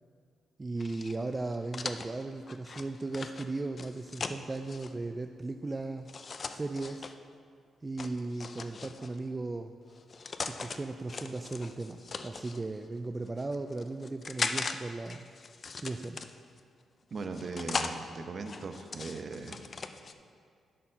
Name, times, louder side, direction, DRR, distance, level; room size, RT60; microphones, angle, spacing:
voice 1, 0.6-6.1 6.5-7.1 7.8-9.7 10.5-15.3 15.8-16.2, right 2 dB, 25° right, 6 dB, 0.3 m, -37 dB
sound 1, 0.8-4.9 6.1-7.1 8.0-9.2 9.9-10.8 11.1-12.6 13.3-14.8 15.1-16.6 17.2-18.0 18.4-20.1, left 4 dB, 45° left, 0.4 m, -39 dB
voice 2, 17.1-19.6, right 4 dB, 50° right, 6 dB, 0.7 m, -39 dB
11.0 x 4.3 x 5.7 m, 2.2 s
cardioid pair, 85°, 0 cm